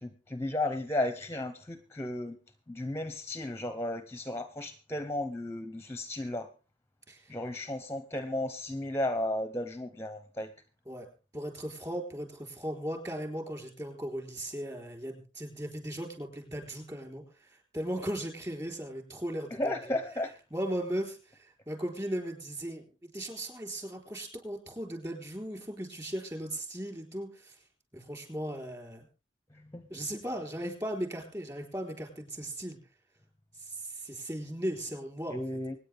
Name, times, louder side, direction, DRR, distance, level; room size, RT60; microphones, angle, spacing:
voice 1, 0.0-2.4 2.7-6.5 7.3-10.5 19.5-20.3 29.5-29.9 35.3-35.7, left 1 dB, 15° left, 10 dB, 0.8 m, -34 dB
voice 2, 11.3-19.7 20.5-27.6 27.9-29.1 29.9-32.8 33.6-35.6, right 1 dB, 20° right, 4 dB, 4.0 m, -37 dB
25.0 x 9.6 x 3.5 m, 0.34 s
head